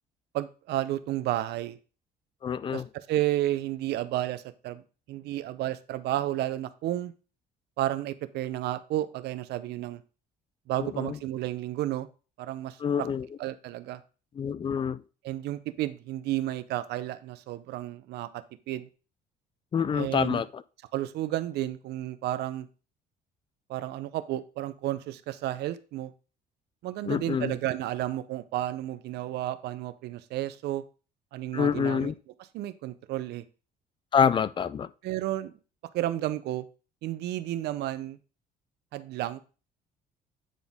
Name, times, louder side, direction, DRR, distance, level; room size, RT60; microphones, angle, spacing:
voice 1, 0.3-1.8 2.7-4.8 5.1-7.1 7.8-10.0 10.7-12.1 12.4-13.1 13.4-14.0 15.2-18.9 19.9-20.4 20.9-22.7 23.7-26.1 26.8-30.8 31.3-32.1 32.5-33.4 35.0-35.5 35.9-36.7 37.0-38.2 38.9-39.5, right 14 dB, 75° right, 0.6 m, -32 dB
voice 2, 2.4-2.9 10.8-11.2 12.8-13.3 14.4-15.0 19.7-20.6 27.0-27.5 31.5-32.1 34.1-34.9, left 7 dB, 30° left, 0.4 m, -27 dB
9.0 x 4.1 x 3.5 m
cardioid pair, 110°, 17 cm